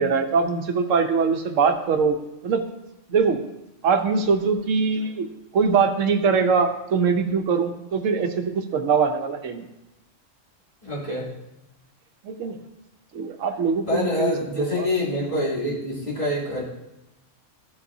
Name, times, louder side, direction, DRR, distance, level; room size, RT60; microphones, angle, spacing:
voice 1, 0.0-2.2 2.4-2.6 3.1-3.4 3.8-5.3 5.5-9.7 12.2-12.6 13.1-14.3 14.7-14.9, right 5 dB, 85° right, 6 dB, 1.2 m, -22 dB
voice 2, 10.8-11.3 13.9-16.6, left 1 dB, 35° left, -8 dB, 3.3 m, -26 dB
13.5 x 6.9 x 2.7 m, 0.91 s
omnidirectional pair, 1.3 m